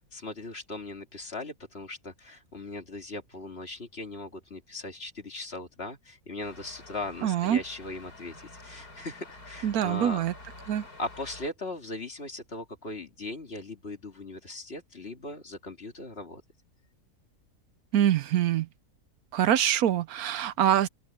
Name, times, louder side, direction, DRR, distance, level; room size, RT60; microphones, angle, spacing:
voice 1, 0.1-8.4 8.6-10.2 10.6-10.7 11.0-16.4, left 2 dB, 40° left, 2.6 m, -39 dB
sound 1, 6.4-11.5, left 2 dB, 85° left, 7.3 m, -48 dB
voice 2, 7.2-7.6 9.6-10.3 10.7-10.8 17.9-18.7 19.3-20.9, right 10 dB, 75° right, 1.1 m, -24 dB
open air
omnidirectional pair, 1.6 m